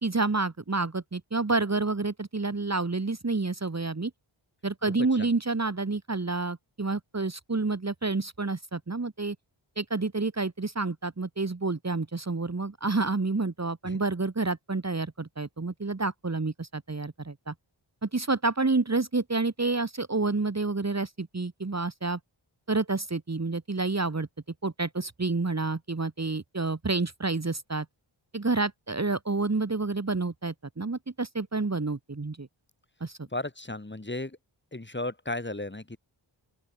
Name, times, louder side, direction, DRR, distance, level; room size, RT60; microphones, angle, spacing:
voice 1, 0.0-4.1 4.6-9.4 9.8-17.5 18.0-22.2 22.7-24.3 24.6-27.9 28.3-32.5 33.0-33.3, right 3 dB, 30° right, 2.2 m, -29 dB
voice 2, 33.3-34.4 34.7-36.0, left 2 dB, 20° left, 3.7 m, -34 dB
open air
wide cardioid pair, 65°, 49 cm